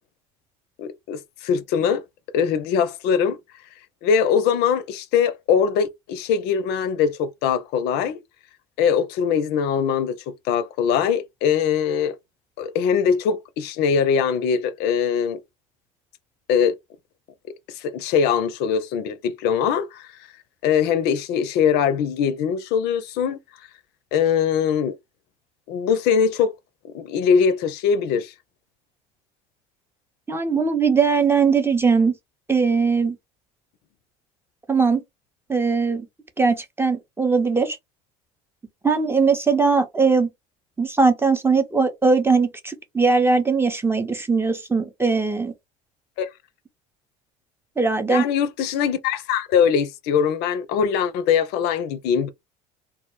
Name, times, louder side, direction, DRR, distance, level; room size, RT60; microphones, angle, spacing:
voice 1, 0.8-2.0 2.3-3.4 4.0-8.2 8.8-12.2 12.6-15.4 16.5-16.7 17.7-20.1 20.6-23.4 24.1-24.9 25.7-26.5 26.9-28.3 46.2-46.3 48.1-52.3, left 7 dB, 60° left, 0.4 m, -22 dB
voice 2, 30.3-32.1 32.5-33.2 34.7-35.0 35.5-36.1 36.4-37.8 38.8-40.3 40.8-45.5 47.8-48.2, right 4 dB, 10° right, 0.5 m, -20 dB
2.2 x 2.0 x 2.9 m
hypercardioid pair, 80°, 19 cm